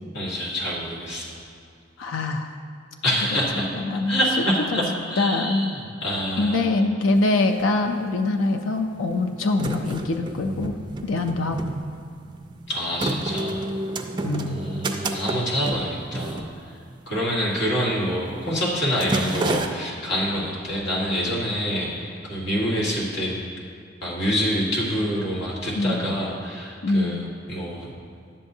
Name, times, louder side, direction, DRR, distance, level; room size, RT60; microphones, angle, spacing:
voice 1, 0.1-1.4 3.0-3.7 4.1-6.6 12.7-13.6 14.4-16.5 17.1-23.4 24.0-27.9, equal, 65° left, -5 dB, 1.7 m, -26 dB
voice 2, 2.0-2.5 3.6-4.2 5.2-5.7 6.4-11.6 14.2-14.6 25.8-26.2 26.8-27.3, left 2 dB, 90° left, 5 dB, 0.4 m, -24 dB
sound 1, 7.2-7.3 7.4-8.3 8.9-17.2 17.5-17.8 18.1-18.4 18.7-19.7, right 2 dB, 25° right, 0.4 m, -30 dB
10.5 x 7.5 x 2.7 m, 2.3 s
head